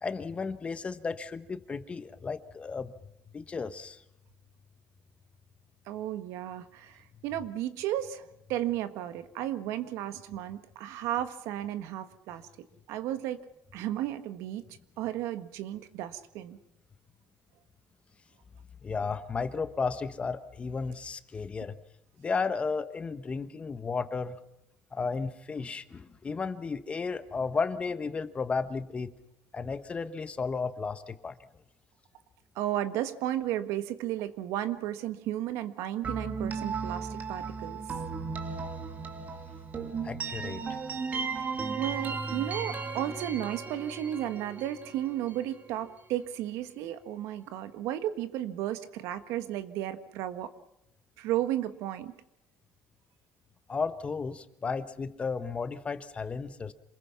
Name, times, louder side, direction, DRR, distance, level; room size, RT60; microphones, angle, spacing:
voice 1, 0.0-2.9 3.3-4.0 18.8-21.7 22.2-24.4 24.9-29.1 29.5-31.4 40.0-40.6 53.7-56.7, left 4 dB, 25° left, 12 dB, 1.3 m, -33 dB
voice 2, 5.9-8.2 8.5-12.4 12.9-13.4 13.7-14.6 15.0-16.6 32.5-37.8 41.8-50.5 51.2-52.1, right 12 dB, 85° right, 11 dB, 1.6 m, -33 dB
sound 1, 36.0-45.8, right 4 dB, 35° right, 2.5 m, -36 dB
27.5 x 21.0 x 5.9 m, 0.84 s
cardioid pair, 130°, 5 cm